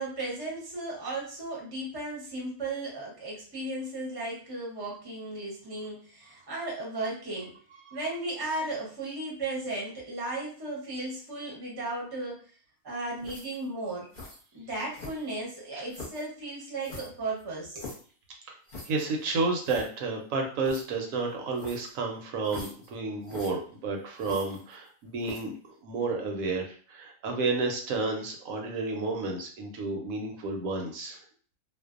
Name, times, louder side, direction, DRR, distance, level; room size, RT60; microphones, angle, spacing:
voice 1, 0.0-7.5 7.9-12.4 12.8-14.0 14.5-17.9, right 2 dB, 25° right, -3 dB, 0.6 m, -35 dB
sound 1, 13.2-13.6 14.1-14.4 14.9-15.4 15.9-16.3 16.8-18.1 18.7-19.1 19.4-19.5 19.6-19.9 20.6-20.8 21.5-21.9 22.4-22.9 23.2-23.5 24.2-24.9 25.2-25.6, left 3 dB, 40° left, 0.8 m, -43 dB
voice 2, 18.9-25.5 25.8-31.2, right 3 dB, 80° right, 2 dB, 1.0 m, -31 dB
2.5 x 2.1 x 2.4 m, 0.43 s
omnidirectional pair, 1.4 m